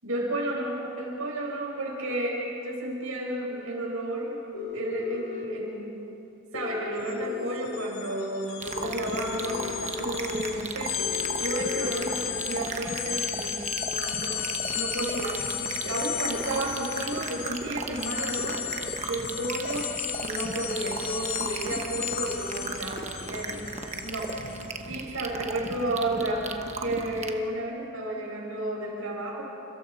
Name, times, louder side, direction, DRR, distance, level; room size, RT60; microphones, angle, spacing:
voice 1, 0.0-4.4 4.7-6.0 6.5-11.1 11.4-18.6 19.0-19.9 20.2-24.4 24.9-29.4, right 1 dB, 90° right, -2 dB, 5.5 m, -32 dB
sound 1, 4.5-5.4 6.5-7.7 8.8-9.9 11.0-12.0, left 7 dB, 55° left, 3.8 m, -35 dB
sound 2, 7.0-7.1 7.4-24.7, left 9 dB, 75° left, 1.6 m, -35 dB
sound 3, 8.6-27.3, right 4 dB, 30° right, 1.2 m, -36 dB
30.0 x 27.5 x 4.4 m, 2.9 s
head